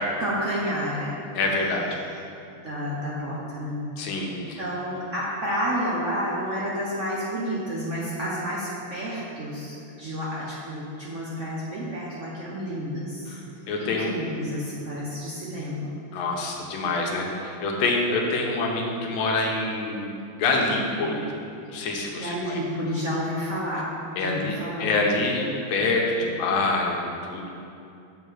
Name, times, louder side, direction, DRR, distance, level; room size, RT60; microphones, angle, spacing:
voice 1, 0.2-1.2 2.6-3.8 4.3-13.4 13.8-15.9 22.2-23.9 24.2-24.9, equal, 50° right, -6 dB, 0.9 m, -30 dB
voice 2, 1.3-1.9 4.0-4.6 13.3-13.4 13.7-14.1 16.1-21.3 21.7-22.6 24.2-27.5, left 3 dB, 80° left, 0 dB, 1.7 m, -26 dB
6.7 x 3.9 x 6.3 m, 2.6 s
omnidirectional pair, 2.2 m